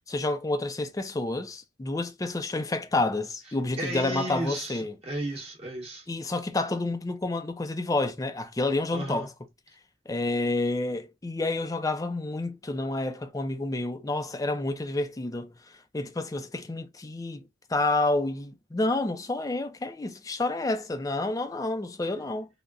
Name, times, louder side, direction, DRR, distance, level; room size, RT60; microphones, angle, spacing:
voice 1, 0.1-4.9 6.1-9.3 10.1-15.5 15.9-17.4 17.7-22.5, left 2 dB, 20° left, 0.4 m, -29 dB
voice 2, 3.8-6.1 8.9-9.3, right 1 dB, 35° right, 1.0 m, -34 dB
3.6 x 2.1 x 2.3 m
head